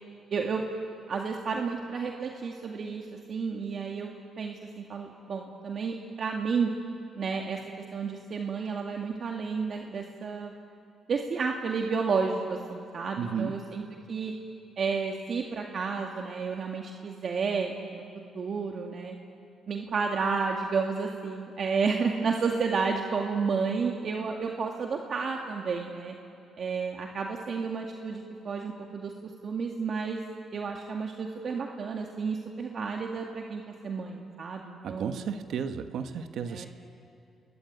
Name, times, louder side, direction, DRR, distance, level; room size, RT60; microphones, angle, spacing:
voice 1, 0.3-0.6 1.1-6.7 7.2-7.6 7.9-10.5 11.1-13.8 14.1-14.3 14.8-18.0 18.3-19.2 19.7-26.1 26.6-29.1 29.4-30.2 30.5-35.2 36.5-36.7, right 5 dB, 50° right, 1 dB, 2.2 m, -31 dB
voice 2, 13.2-13.6 34.8-36.7, right 7 dB, 70° right, 8 dB, 1.3 m, -33 dB
29.0 x 21.5 x 9.4 m, 2.6 s
cardioid pair, 90°, 0 cm